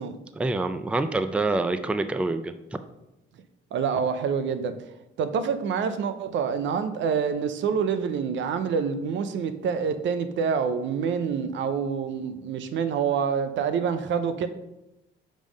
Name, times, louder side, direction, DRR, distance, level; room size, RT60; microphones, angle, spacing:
voice 1, 0.4-2.5, right 2 dB, 5° right, 10 dB, 0.3 m, -26 dB
voice 2, 3.7-4.7 5.2-14.5, right 6 dB, 70° right, 10 dB, 0.6 m, -27 dB
5.1 x 3.7 x 5.1 m, 0.92 s
cardioid pair, 90°, 20 cm